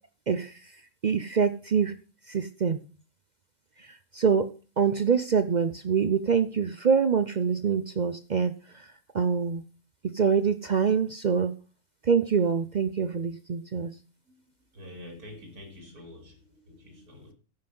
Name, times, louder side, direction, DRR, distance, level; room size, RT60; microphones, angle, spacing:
voice 1, 0.3-0.7 1.0-1.9 2.3-2.8 3.8-4.5 4.8-9.6 10.1-11.5 12.0-13.9, right 6 dB, 60° right, 0.4 m, -25 dB
voice 2, 14.7-17.3, left 1 dB, 90° right, 3.3 m, -46 dB
14.0 x 5.8 x 5.4 m
omnidirectional pair, 1.5 m